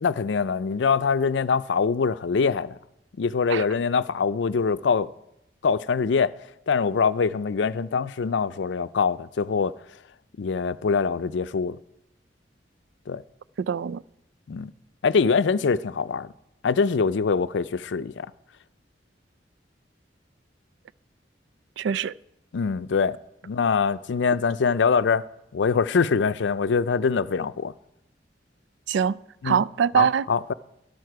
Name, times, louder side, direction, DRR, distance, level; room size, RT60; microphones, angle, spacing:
voice 1, 0.0-2.8 3.2-5.1 5.6-6.3 6.7-9.7 10.4-11.8 13.1-13.2 14.5-14.7 15.0-16.3 16.6-18.3 22.5-23.2 23.4-25.3 25.5-27.7 29.4-29.6 30.0-30.5, left 5 dB, 80° left, 0.4 m, -23 dB
voice 2, 13.6-14.0 21.8-22.1 28.9-30.2, right 7 dB, 75° right, 0.3 m, -24 dB
13.0 x 12.5 x 4.7 m
head